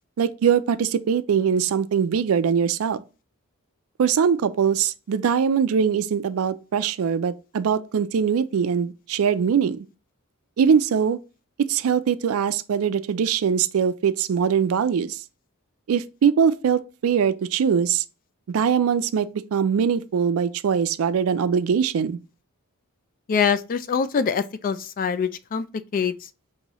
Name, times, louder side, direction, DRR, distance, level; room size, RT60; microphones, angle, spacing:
voice 1, 0.2-3.0 4.0-9.8 10.6-11.2 11.7-15.2 15.9-18.0 18.5-22.2, right 7 dB, 70° right, 0.4 m, -22 dB
voice 2, 23.3-25.7 25.9-26.1, left 6 dB, 40° left, 0.3 m, -24 dB
5.4 x 2.7 x 2.9 m
head